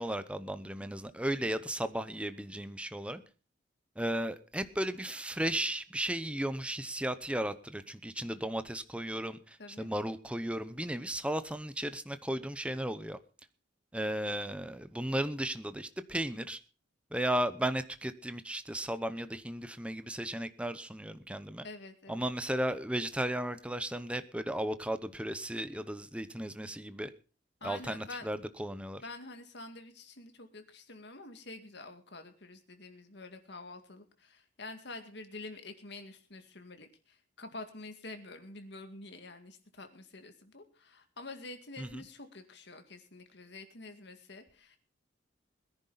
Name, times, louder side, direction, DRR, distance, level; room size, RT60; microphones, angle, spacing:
voice 1, 0.0-3.2 4.0-13.2 13.9-16.6 17.1-21.6 22.1-27.1 27.6-29.0 41.8-42.0, right 1 dB, 5° right, 0.8 m, -35 dB
voice 2, 9.6-9.9 21.6-22.3 27.6-28.3 29.0-44.8, left 2 dB, 65° left, 2.2 m, -47 dB
21.0 x 10.5 x 4.1 m
head